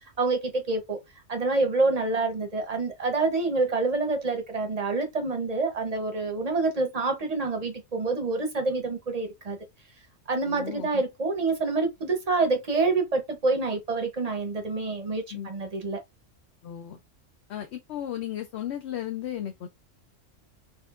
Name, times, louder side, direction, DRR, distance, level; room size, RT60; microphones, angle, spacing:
voice 1, 0.2-1.0 1.3-9.6 10.3-16.0, right 3 dB, 35° right, 0.8 m, -27 dB
voice 2, 10.5-11.0 15.3-15.5 16.6-17.0 17.5-19.7, left 11 dB, 65° left, 0.8 m, -35 dB
4.2 x 2.4 x 2.4 m
omnidirectional pair, 1.3 m